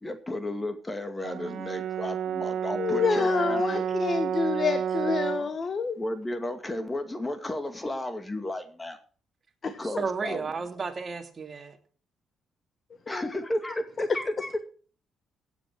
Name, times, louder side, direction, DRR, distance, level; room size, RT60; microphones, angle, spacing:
voice 1, 0.0-3.8 5.4-5.5 6.0-9.0 9.8-10.4 13.1-14.6, left 1 dB, 15° left, 8 dB, 2.2 m, -33 dB
Brass instrument, 1.2-5.5, right 8 dB, 80° right, 1.8 m, -30 dB
voice 2, 2.8-6.0 9.6-9.7 13.1-13.3, left 5 dB, 40° left, 10 dB, 1.4 m, -27 dB
voice 3, 9.8-11.8, right 4 dB, 35° right, 4 dB, 2.8 m, -33 dB
16.0 x 9.1 x 4.7 m, 0.40 s
cardioid pair, 90°, 0 cm